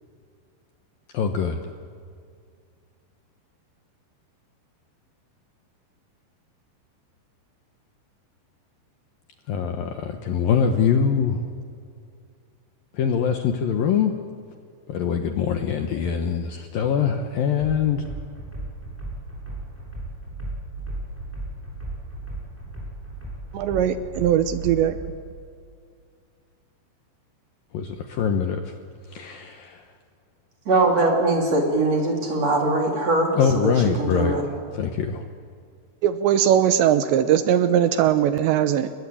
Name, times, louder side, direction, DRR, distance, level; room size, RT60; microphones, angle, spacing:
voice 1, 1.1-1.7 9.5-11.4 12.9-14.1 14.9-18.0 27.7-28.7 29.1-29.8 33.3-34.4 34.7-35.3, left 7 dB, 75° left, 6 dB, 2.2 m, -23 dB
sound 1, 17.6-25.1, right 2 dB, 5° right, 7.6 m, -35 dB
voice 2, 23.5-25.0 36.0-38.9, right 10 dB, 75° right, 11 dB, 2.9 m, -20 dB
voice 3, 30.7-33.3 33.6-33.7 34.0-34.4, right 2 dB, 35° right, 1 dB, 4.0 m, -21 dB
29.5 x 22.0 x 8.5 m, 2.2 s
omnidirectional pair, 5.7 m